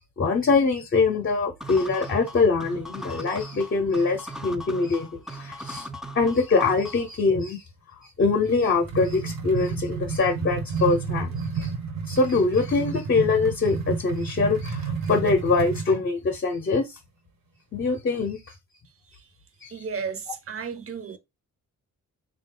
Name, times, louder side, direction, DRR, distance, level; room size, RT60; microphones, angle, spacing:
voice 1, 0.2-5.9 6.1-7.6 8.0-11.7 12.1-17.0 17.7-18.5 19.6-19.7, left 4 dB, 35° left, 0.7 m, -23 dB
sound 1, 1.6-7.2, equal, ahead, 0.3 m, -39 dB
sound 2, 8.4-16.0, right 5 dB, 80° right, 1.1 m, -31 dB
voice 2, 19.7-21.2, right 6 dB, 45° right, 0.6 m, -33 dB
3.6 x 2.4 x 3.7 m
wide cardioid pair, 150°, 33 cm